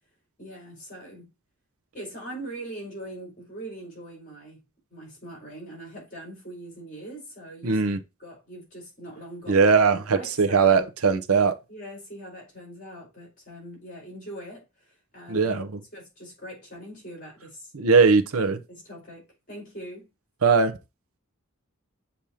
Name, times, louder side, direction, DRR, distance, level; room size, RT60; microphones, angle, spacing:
voice 1, 0.4-1.3 1.9-4.6 4.9-7.9 8.2-9.7 10.1-10.8 11.7-15.6 15.9-17.7 18.4-20.1, right 1 dB, 40° left, 4.5 m, -42 dB
voice 2, 7.6-8.0 9.5-11.5 15.3-15.7 17.7-18.6 20.4-20.7, right 5 dB, 90° right, 0.8 m, -20 dB
7.1 x 3.0 x 4.9 m
head